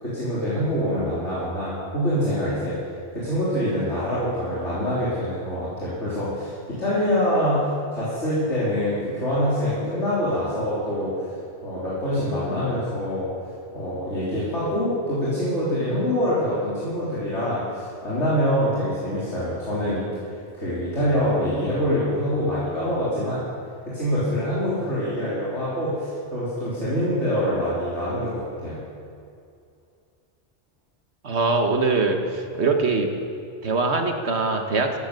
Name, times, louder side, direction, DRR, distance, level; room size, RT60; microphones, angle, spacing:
voice 1, 0.0-2.8 3.1-11.3 11.6-13.3 13.7-20.1 20.5-23.4 23.9-28.8, equal, 90° left, -9 dB, 4.0 m, -25 dB
voice 2, 31.2-33.1 33.6-35.0, right 3 dB, 70° right, 4 dB, 1.8 m, -22 dB
14.5 x 13.5 x 6.8 m, 2.4 s
omnidirectional pair, 1.2 m